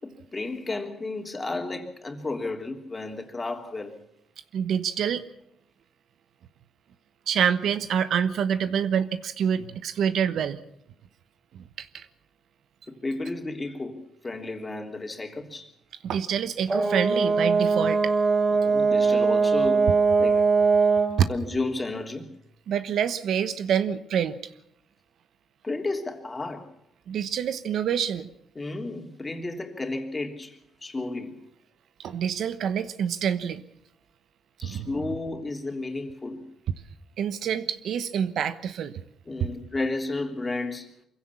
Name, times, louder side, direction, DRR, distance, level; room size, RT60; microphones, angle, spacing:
voice 1, 0.0-4.0 12.9-15.7 18.5-19.9 20.2-20.4 21.3-22.3 25.6-26.7 28.5-31.4 34.6-36.4 39.3-40.9, left 2 dB, 25° left, 4 dB, 3.3 m, -32 dB
voice 2, 4.5-5.2 7.3-10.6 11.5-12.1 16.0-18.1 21.2-21.3 22.7-24.4 27.1-28.3 32.0-33.6 34.6-34.9 37.2-38.9 39.4-39.5, right 8 dB, 70° right, 12 dB, 1.1 m, -26 dB
Brass instrument, 16.7-21.2, right 4 dB, 30° right, 5.6 m, -21 dB
24.0 x 16.0 x 7.1 m, 0.76 s
cardioid pair, 90°, 0 cm